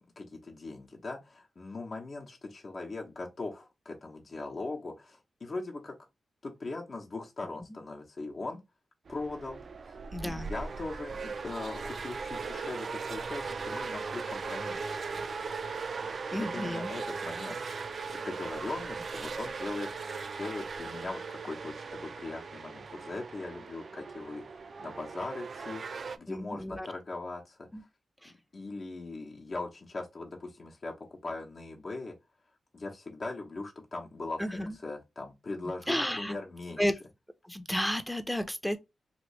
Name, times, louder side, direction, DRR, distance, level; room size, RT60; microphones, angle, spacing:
voice 1, 0.2-5.9 6.4-8.6 9.1-15.2 16.3-19.9 20.3-25.8 26.2-27.7 28.2-30.9 31.2-32.1 32.7-36.8, left 3 dB, 50° left, 0.8 m, -40 dB
sound 1, 9.1-26.2, right 4 dB, 60° right, 0.3 m, -38 dB
voice 2, 10.1-10.5 16.3-16.9 26.3-26.9 27.7-27.8 28.2-28.3 34.4-34.8 35.9-36.4 36.8-36.9 37.5-38.8, equal, 5° left, 0.6 m, -32 dB
3.0 x 2.6 x 3.1 m
cardioid pair, 65°, 0 cm